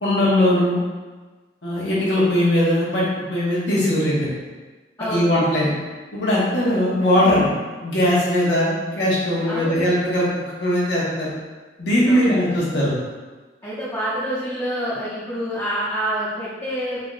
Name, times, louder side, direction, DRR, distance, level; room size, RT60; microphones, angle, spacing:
voice 1, 0.0-0.8 1.6-3.0 3.3-4.3 5.1-5.7 6.1-7.5 7.8-11.3 11.8-13.0, left 1 dB, 85° left, -7 dB, 1.3 m, -20 dB
voice 2, 5.0-5.3 9.5-9.8 12.1-12.4 13.6-17.0, equal, 20° left, -12 dB, 0.9 m, -27 dB
3.9 x 2.4 x 4.0 m, 1.3 s
head